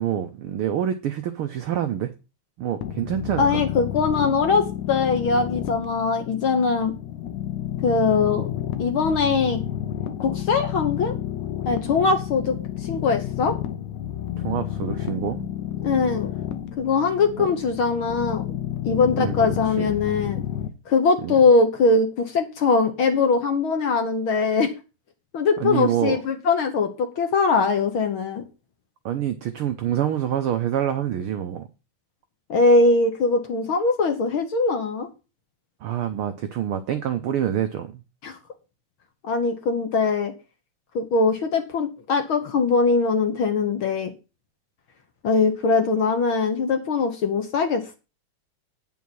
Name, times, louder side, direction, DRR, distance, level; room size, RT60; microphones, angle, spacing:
voice 1, 0.0-2.1 2.6-3.6 14.4-15.5 17.4-17.5 19.2-19.9 21.2-21.3 25.6-26.2 29.0-31.7 35.8-37.9, right 10 dB, 85° right, 1.2 m, -26 dB
sound 1, 2.8-20.7, left 11 dB, 90° left, 2.3 m, -31 dB
voice 2, 3.4-6.9 7.8-8.5 8.8-9.6 10.2-11.1 11.7-12.6 12.8-13.6 15.8-16.3 16.8-18.4 18.8-20.4 20.9-24.7 25.3-28.4 32.5-35.1 38.2-38.3 39.2-40.3 40.9-44.1 45.2-48.0, left 4 dB, 55° left, 1.6 m, -21 dB
9.3 x 5.6 x 6.2 m
omnidirectional pair, 3.4 m